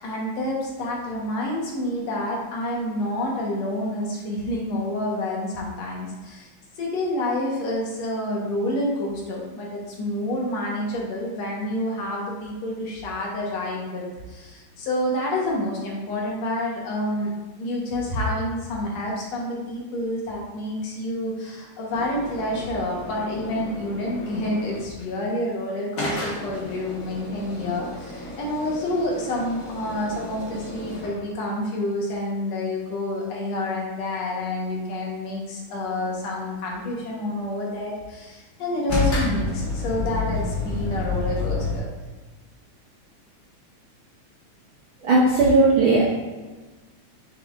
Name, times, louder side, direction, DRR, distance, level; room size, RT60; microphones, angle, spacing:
voice 1, 0.0-6.5 6.8-17.3 17.6-41.9, left 1 dB, 65° left, -2 dB, 2.3 m, -28 dB
sound 1, 21.9-25.0 26.0-31.2 38.9-41.8, left 3 dB, 40° left, 1.4 m, -31 dB
voice 2, 45.0-46.1, right 3 dB, 70° right, -5 dB, 1.2 m, -17 dB
6.5 x 6.2 x 2.5 m, 1.2 s
omnidirectional pair, 3.3 m